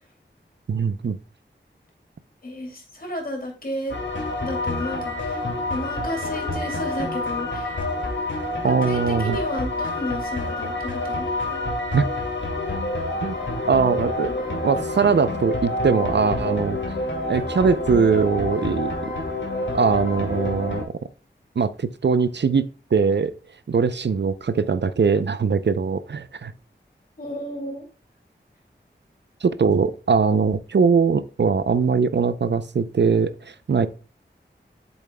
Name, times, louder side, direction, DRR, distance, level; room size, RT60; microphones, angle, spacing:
voice 1, 0.7-1.2 8.6-9.4 11.9-12.0 13.2-13.3 13.7-16.8 17.3-18.9 19.7-20.8 21.6-23.3 23.7-26.5 29.4-33.9, right 5 dB, 65° right, 0.5 m, -21 dB
voice 2, 2.4-4.0 4.4-7.8 8.6-11.3 27.2-27.8, left 1 dB, 50° left, 2.6 m, -32 dB
sound 1, 3.9-20.8, left 2 dB, 75° left, 2.1 m, -28 dB
8.4 x 7.1 x 2.2 m
wide cardioid pair, 75°, 19 cm